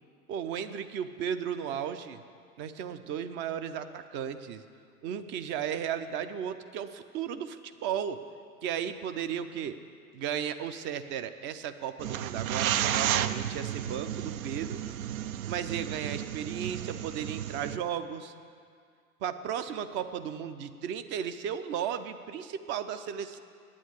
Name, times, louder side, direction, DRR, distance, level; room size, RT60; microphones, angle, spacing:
voice 1, 0.3-2.2 2.6-4.6 5.0-8.2 8.6-9.7 10.1-14.8 15.5-18.3 19.2-23.4, right 8 dB, 25° right, 10 dB, 0.5 m, -35 dB
sound 1, 12.0-17.8, right 11 dB, 65° right, 0.6 m, -32 dB
9.2 x 8.6 x 8.3 m, 2.2 s
figure-of-eight pair, 95°, 45 cm